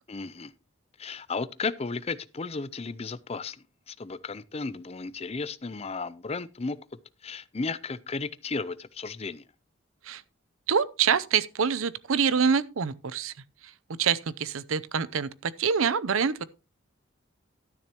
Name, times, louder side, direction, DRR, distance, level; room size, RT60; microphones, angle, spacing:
voice 1, 0.1-0.5 1.0-3.6 3.9-6.8 7.2-9.4, left 4 dB, 30° left, 0.5 m, -34 dB
voice 2, 10.7-13.3 14.0-16.4, right 6 dB, 85° right, 0.6 m, -26 dB
12.5 x 10.5 x 2.9 m
head